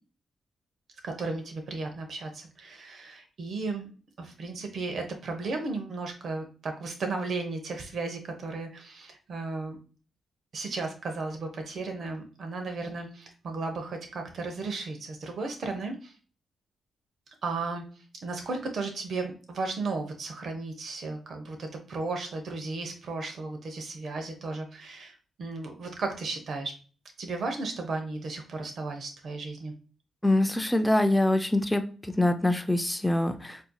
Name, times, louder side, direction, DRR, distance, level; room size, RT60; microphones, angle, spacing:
voice 1, 1.0-3.9 4.2-9.8 10.5-16.1 17.4-17.9 18.2-26.7 27.2-29.7, right 3 dB, 65° right, 4 dB, 0.8 m, -35 dB
voice 2, 30.2-33.6, left 1 dB, 5° left, 8 dB, 0.4 m, -24 dB
4.1 x 2.7 x 2.3 m, 0.37 s
cardioid pair, 85°, 0 cm